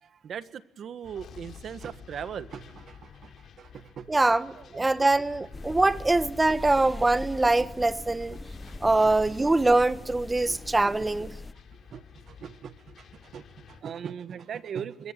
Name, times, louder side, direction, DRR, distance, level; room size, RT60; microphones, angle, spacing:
voice 1, 0.0-4.2 4.5-4.8 8.3-8.4 8.7-8.8 9.0-9.1 10.5-10.6 11.9-15.1, right 8 dB, 60° right, 1.5 m, -40 dB
sound 1, 1.0-13.8, left 7 dB, 60° left, 4.3 m, -50 dB
voice 2, 4.1-8.4 8.8-11.3, right 2 dB, 20° right, 1.2 m, -23 dB
sound 2, 5.5-11.5, left 2 dB, 15° left, 1.1 m, -41 dB
26.0 x 21.5 x 9.2 m
cardioid pair, 90°, 0 cm